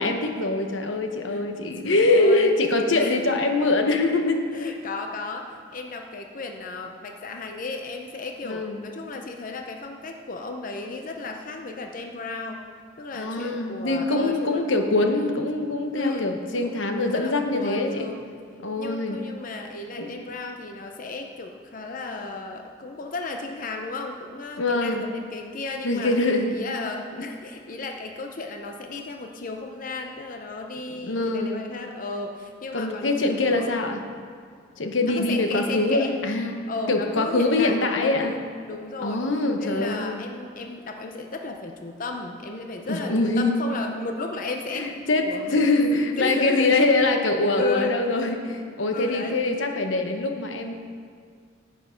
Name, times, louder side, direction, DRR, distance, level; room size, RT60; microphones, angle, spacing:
voice 1, 0.0-4.5 8.4-8.8 13.1-18.1 18.6-19.2 20.0-20.1 24.6-25.0 25.8-26.5 31.0-31.7 32.7-34.0 34.8-36.6 36.9-38.3 39.0-40.2 42.9-43.6 44.7-50.7, left 2 dB, 85° left, 5 dB, 0.9 m, -23 dB
voice 2, 1.8-2.5 3.0-3.2 4.5-12.6 13.0-14.6 15.1-15.4 15.9-18.2 18.8-26.1 26.5-33.7 35.0-36.2 36.7-39.2 39.6-44.9 45.2-45.6 45.9-46.8 47.5-48.0 48.9-49.4, left 3 dB, 45° left, 4 dB, 0.6 m, -34 dB
10.5 x 8.0 x 5.1 m, 2.1 s
head